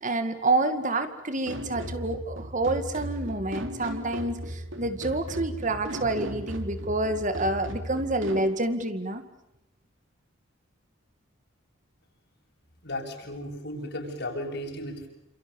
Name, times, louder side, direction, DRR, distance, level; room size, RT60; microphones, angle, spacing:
voice 1, 0.0-9.2, right 2 dB, 40° right, 9 dB, 2.2 m, -28 dB
sound 1, 1.5-8.5, equal, 70° right, 3.6 m, -37 dB
voice 2, 12.8-15.1, left 1 dB, 55° left, 2 dB, 7.3 m, -35 dB
29.5 x 28.0 x 7.2 m, 0.84 s
head